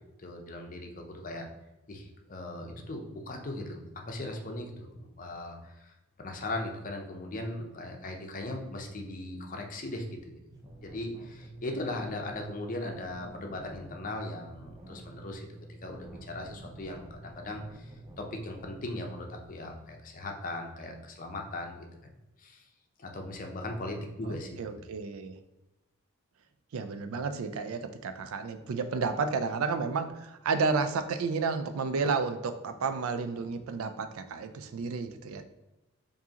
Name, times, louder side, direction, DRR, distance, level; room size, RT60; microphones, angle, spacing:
voice 1, 0.2-1.5 1.9-10.4 10.8-15.5 15.8-21.9 22.4-22.6 23.0-24.6, left 1 dB, 40° left, 3 dB, 0.6 m, -38 dB
sound 1, 10.5-19.5, right 1 dB, 15° right, 0.5 m, -48 dB
voice 2, 24.2-25.4 26.7-35.4, right 4 dB, 80° right, 9 dB, 0.4 m, -31 dB
4.7 x 2.6 x 2.8 m, 0.99 s
head